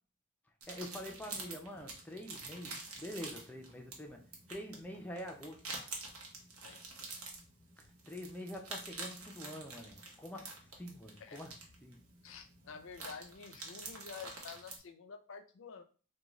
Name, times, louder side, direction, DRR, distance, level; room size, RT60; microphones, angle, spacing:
sound 1, 0.6-14.8, right 3 dB, 85° right, 0.9 m, -48 dB
voice 1, 0.7-4.2 4.5-5.6 8.1-11.5 11.8-12.0, equal, 5° left, 0.5 m, -46 dB
voice 2, 12.2-15.8, left 6 dB, 65° left, 0.5 m, -49 dB
3.7 x 2.3 x 3.0 m
head